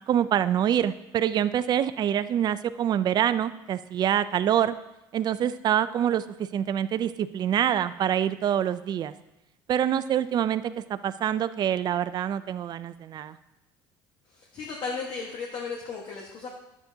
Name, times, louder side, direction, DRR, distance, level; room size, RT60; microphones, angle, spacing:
voice 1, 0.1-4.7 5.1-9.1 9.7-10.6 10.9-13.4, right 10 dB, 45° right, 13 dB, 0.4 m, -25 dB
voice 2, 14.3-16.5, left 4 dB, 55° left, -1 dB, 1.5 m, -35 dB
10.5 x 8.2 x 2.8 m, 0.93 s
supercardioid pair, 100°, 10 cm